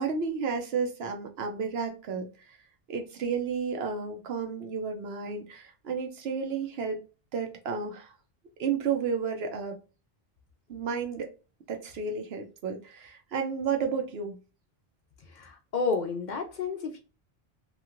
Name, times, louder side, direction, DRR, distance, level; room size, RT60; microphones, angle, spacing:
voice 1, 0.0-2.3 2.9-7.0 7.3-8.1 8.6-9.8 10.7-11.3 11.7-14.4, right 5 dB, 75° right, 0.9 m, -32 dB
voice 2, 15.3-17.0, left 4 dB, 55° left, 0.6 m, -31 dB
3.0 x 2.5 x 2.4 m
omnidirectional pair, 1.1 m